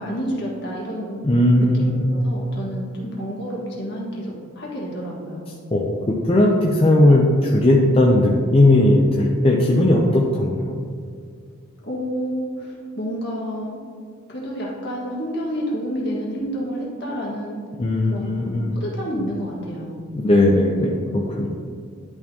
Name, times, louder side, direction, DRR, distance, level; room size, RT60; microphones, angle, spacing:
voice 1, 0.0-1.3 1.6-5.5 11.8-13.8 14.3-17.6 18.1-20.0, equal, 50° left, -4 dB, 1.7 m, -29 dB
voice 2, 1.2-2.1 5.7-10.8 17.8-18.8 20.1-21.5, left 1 dB, 25° left, -2 dB, 0.5 m, -17 dB
11.0 x 4.3 x 2.8 m, 2.1 s
head